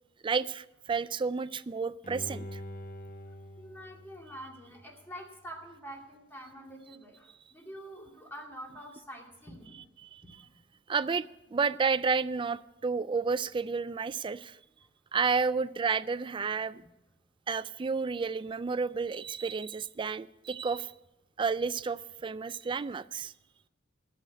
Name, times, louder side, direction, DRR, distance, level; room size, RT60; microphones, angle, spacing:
voice 1, 0.2-2.6 10.0-10.2 10.9-11.3 11.5-14.6 15.1-16.8 17.5-20.9 21.4-23.3, right 5 dB, 25° right, 15 dB, 0.3 m, -31 dB
Bowed string instrument, 2.0-5.2 5.6-5.7, left 1 dB, 45° left, 0.8 m, -45 dB
voice 2, 3.6-9.8 10.2-10.6, equal, 10° left, 0 dB, 2.4 m, -46 dB
11.5 x 7.0 x 9.3 m, 0.92 s
head